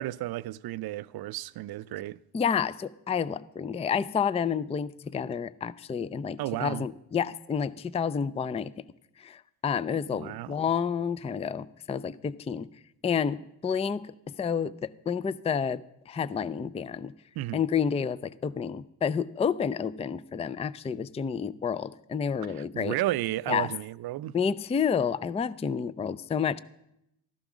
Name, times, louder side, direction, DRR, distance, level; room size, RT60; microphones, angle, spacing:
voice 1, 0.0-2.2 6.4-6.9 10.1-10.6 17.4-17.6 22.5-24.4, right 15 dB, 55° right, 0.5 m, -33 dB
voice 2, 2.3-8.9 9.2-12.7 13.0-17.1 17.5-23.0 23.5-23.7 24.3-26.6, left 7 dB, 15° left, 0.4 m, -30 dB
13.5 x 11.5 x 6.1 m
supercardioid pair, 65°, 45 cm